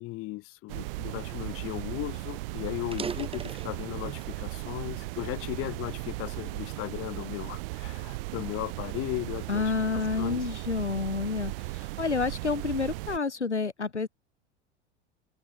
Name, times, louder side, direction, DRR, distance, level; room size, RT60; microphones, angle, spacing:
voice 1, 0.0-10.5, left 20 dB, 40° left, 1.9 m, -36 dB
sound 1, 0.7-13.2, right 23 dB, 55° right, 2.9 m, -37 dB
sound 2, 2.9-4.4 4.9-6.2 6.8-7.0 7.7-9.7, right 5 dB, 15° right, 2.3 m, -41 dB
voice 2, 9.5-14.1, left 4 dB, 85° left, 2.0 m, -29 dB
open air
figure-of-eight pair, 85°, 34 cm